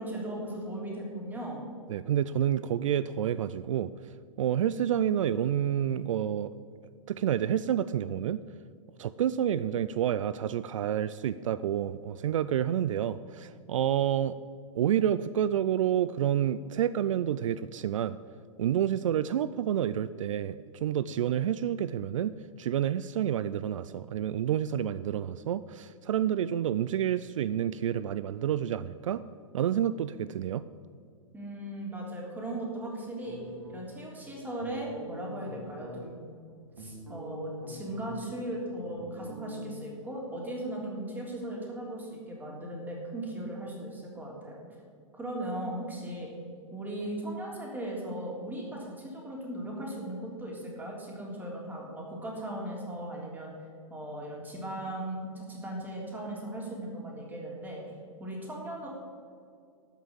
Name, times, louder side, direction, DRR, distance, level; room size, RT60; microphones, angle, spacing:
voice 1, 0.0-1.6 31.3-33.4 33.7-36.2 36.8-44.6 45.1-46.3 46.7-53.5 53.9-57.8 58.2-58.9, right 1 dB, 10° right, -2 dB, 3.3 m, -37 dB
voice 2, 1.9-3.9 4.4-6.5 7.1-8.4 9.0-14.4 14.7-18.2 18.6-22.3 22.6-29.3 29.5-30.6, right 10 dB, 70° right, 15 dB, 0.4 m, -29 dB
sound 1, 33.2-34.1 34.6-36.0 36.5-38.4 38.7-39.8, left 1 dB, 85° right, 2.6 m, -44 dB
12.5 x 5.9 x 8.2 m, 2.3 s
hypercardioid pair, 110°, 17 cm